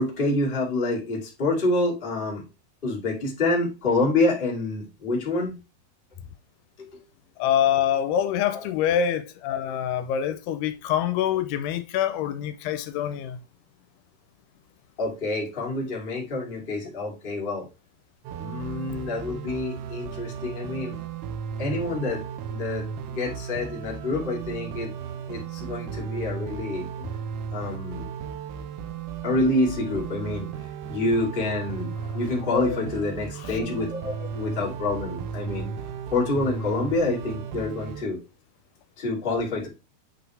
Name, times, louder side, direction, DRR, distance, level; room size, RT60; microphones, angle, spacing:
voice 1, 0.0-2.4 2.8-5.5 6.8-6.9 8.5-8.6 15.0-17.6 18.4-21.0 21.6-22.2 22.5-24.9 25.3-26.9 27.5-28.1 29.2-30.5 30.9-35.7 36.1-38.2 39.0-39.7, left 2 dB, 20° left, 1.5 m, -27 dB
voice 2, 7.4-13.4 32.1-32.2 32.5-32.8 33.4-33.5, left 9 dB, 85° left, 2.6 m, -25 dB
sound 1, 18.2-38.0, right 7 dB, 80° right, 2.7 m, -35 dB
8.5 x 3.9 x 3.5 m
omnidirectional pair, 4.7 m